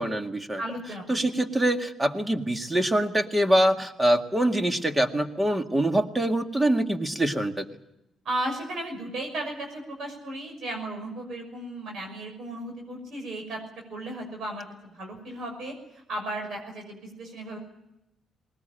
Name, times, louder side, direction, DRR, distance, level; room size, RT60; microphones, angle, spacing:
voice 1, 0.0-0.6 1.1-7.7, right 1 dB, 15° right, 6 dB, 2.0 m, -24 dB
voice 2, 0.6-1.3 8.2-13.6 13.9-14.7 14.9-15.7 16.1-17.6, right 1 dB, 65° right, 2 dB, 6.2 m, -35 dB
20.5 x 20.0 x 8.9 m, 0.87 s
cardioid pair, 90°, 0 cm